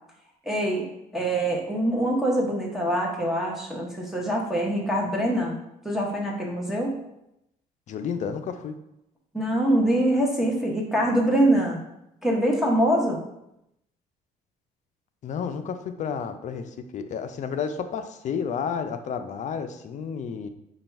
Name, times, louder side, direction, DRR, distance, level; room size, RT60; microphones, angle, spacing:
voice 1, 0.5-0.9 1.1-5.6 5.8-7.0 9.3-11.8 12.2-13.2, right 1 dB, ahead, -3 dB, 0.8 m, -24 dB
voice 2, 7.9-8.7 15.2-16.7 16.9-20.5, left 6 dB, 45° left, 8 dB, 0.5 m, -31 dB
5.0 x 2.3 x 4.4 m, 0.84 s
cardioid pair, 110°, 17 cm